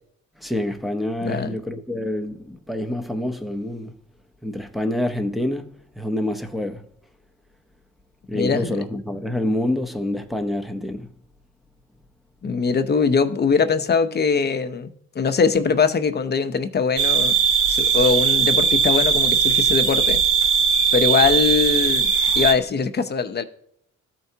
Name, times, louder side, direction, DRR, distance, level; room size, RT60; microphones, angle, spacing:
voice 1, 0.4-3.9 4.4-6.8 8.3-11.1, left 1 dB, ahead, 0.7 m, -27 dB
voice 2, 1.2-1.5 8.3-8.8 12.4-17.4 17.7-20.2 20.9-22.1 22.4-23.4, left 5 dB, 35° left, 0.7 m, -21 dB
sound 1, 17.0-22.5, right 6 dB, 45° right, 1.1 m, -19 dB
13.0 x 4.5 x 2.8 m
cardioid pair, 90°, 30 cm